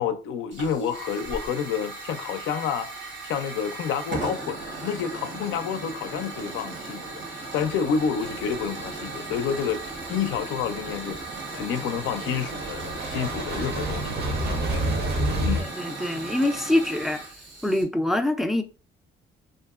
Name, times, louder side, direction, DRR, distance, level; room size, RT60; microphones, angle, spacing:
voice 1, 0.0-2.9 3.2-11.2 11.5-14.8 15.4-15.7, left 7 dB, 90° left, 0.4 m, -29 dB
Hiss / Fire, 0.5-17.8, right 3 dB, 70° right, 1.0 m, -37 dB
sound 1, 7.7-7.8 8.3-8.6 8.9-15.6, right 1 dB, 55° right, 0.7 m, -30 dB
voice 2, 15.6-17.2 17.6-18.6, left 1 dB, ahead, 0.3 m, -24 dB
2.8 x 2.5 x 2.3 m
cardioid pair, 90°, 20 cm